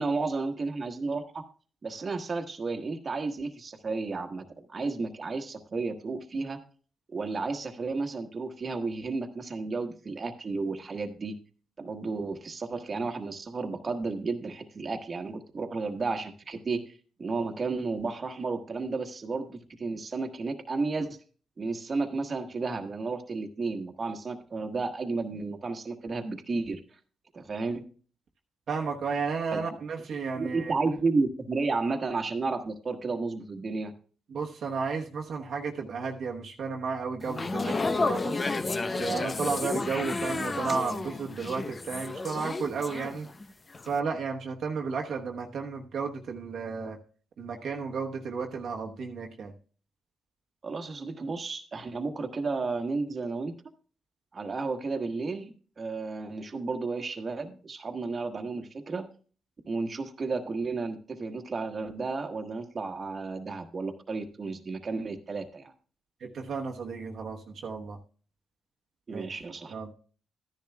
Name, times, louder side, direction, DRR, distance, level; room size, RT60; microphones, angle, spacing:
voice 1, 0.0-1.4 1.8-4.4 4.7-6.6 7.1-11.4 11.8-16.9 17.2-21.2 21.6-26.8 27.3-27.8 29.5-29.6 30.3-33.9 50.6-53.5 54.3-59.1 59.6-65.7 69.1-69.7, right 3 dB, 40° right, 6 dB, 1.3 m, -32 dB
voice 2, 28.7-30.7 34.3-38.4 38.9-43.3 43.8-47.0 47.4-49.5 66.2-68.0 69.1-69.4 69.7-69.9, right 5 dB, 65° right, 0 dB, 1.1 m, -33 dB
sound 1, 37.2-43.5 43.7-44.0, left 3 dB, 30° left, 0.7 m, -31 dB
13.5 x 10.5 x 2.3 m, 0.40 s
cardioid pair, 75°, 0 cm